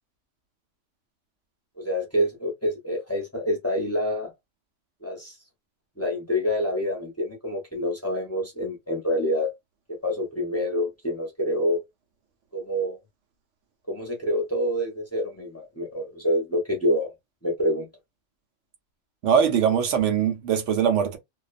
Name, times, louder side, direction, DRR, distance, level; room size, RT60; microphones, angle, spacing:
voice 1, 1.8-4.3 5.0-5.4 6.0-9.5 9.9-11.8 12.5-13.0 13.9-17.1 17.4-17.9, equal, 15° left, 0.7 m, -27 dB
voice 2, 19.2-21.2, right 8 dB, 85° right, 1.0 m, -21 dB
2.5 x 2.3 x 2.4 m
omnidirectional pair, 1.2 m